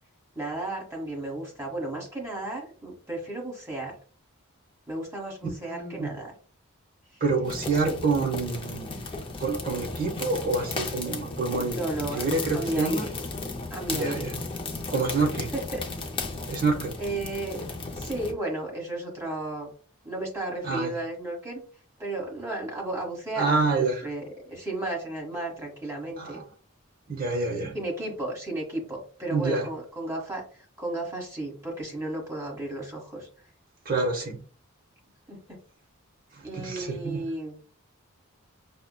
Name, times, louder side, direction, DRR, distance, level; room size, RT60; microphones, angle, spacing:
voice 1, 0.3-4.0 4.9-6.3 7.1-7.2 7.7-8.0 11.7-12.3 12.5-13.1 13.7-14.3 15.5-15.8 16.5-16.6 17.0-17.6 17.9-19.7 20.0-21.6 22.0-26.4 27.7-33.3 35.3-35.6 36.4-37.6, right 2 dB, 15° right, -2 dB, 1.3 m, -34 dB
voice 2, 5.6-6.2 7.2-9.0 9.4-13.1 13.9-14.3 14.9-15.5 16.5-17.0 20.6-20.9 23.4-24.1 26.2-26.4 27.1-27.7 29.3-29.7 33.8-34.4 36.5-37.2, right 3 dB, 40° right, 2 dB, 0.9 m, -27 dB
sound 1, 7.4-18.3, left 3 dB, 25° left, 0.4 m, -35 dB
5.5 x 2.1 x 2.2 m, 0.42 s
head